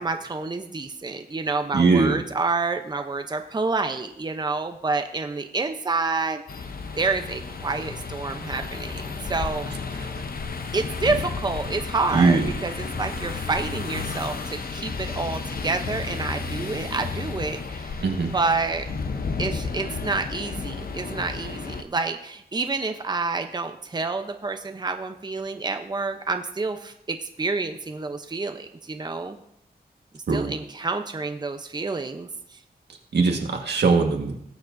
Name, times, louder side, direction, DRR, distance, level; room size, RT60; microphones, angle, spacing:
voice 1, 0.0-6.4 7.0-9.7 10.7-18.9 19.4-29.4 30.1-32.6, right 3 dB, 25° right, 6 dB, 0.7 m, -28 dB
voice 2, 1.7-2.2 12.1-12.5 18.0-18.3 30.3-30.5 33.1-34.4, right 4 dB, 85° right, 2 dB, 1.6 m, -20 dB
sound 1, 6.5-21.8, left 4 dB, 60° left, 0.8 m, -32 dB
19.5 x 7.2 x 2.6 m, 0.75 s
wide cardioid pair, 90°, 17 cm